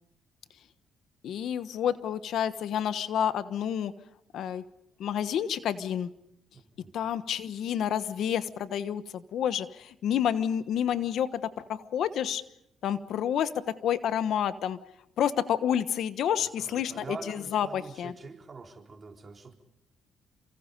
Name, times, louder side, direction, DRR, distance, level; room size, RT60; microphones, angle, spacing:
voice 1, 1.2-3.9 4.3-4.6 5.0-6.1 6.9-12.4 12.8-13.5 13.8-14.8 15.2-18.1, left 9 dB, 75° left, 13 dB, 1.2 m, -29 dB
voice 2, 6.5-6.9 16.4-19.5, right 4 dB, 35° right, 3 dB, 4.0 m, -45 dB
29.0 x 25.0 x 5.4 m, 0.77 s
cardioid pair, 90°, 0 cm